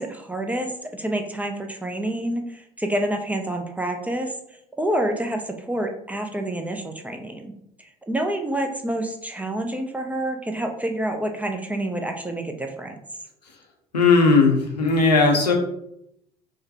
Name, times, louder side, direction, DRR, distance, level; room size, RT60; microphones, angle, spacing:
voice 1, 0.0-4.3 4.8-7.5 7.8-13.0, right 1 dB, 5° right, 4 dB, 0.4 m, -28 dB
voice 2, 13.9-15.5, left 4 dB, 90° left, 1 dB, 0.5 m, -17 dB
4.7 x 2.1 x 2.8 m, 0.78 s
figure-of-eight pair, 65°, 20 cm